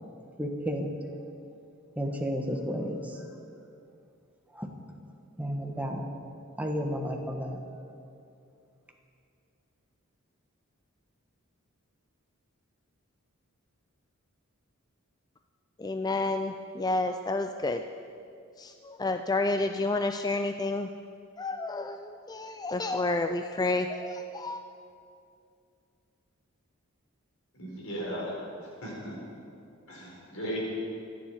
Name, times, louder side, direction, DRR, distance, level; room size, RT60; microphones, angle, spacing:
voice 1, 0.4-0.9 2.0-3.2 4.5-4.7 5.4-6.2 6.6-7.6, equal, 5° right, 2 dB, 1.4 m, -32 dB
voice 2, 15.8-17.8 18.6-20.9 21.4-24.6, left 2 dB, 20° left, 7 dB, 0.4 m, -30 dB
voice 3, 27.5-29.1 29.9-30.6, equal, 75° left, -3 dB, 5.0 m, -37 dB
26.5 x 10.0 x 4.9 m, 2.5 s
head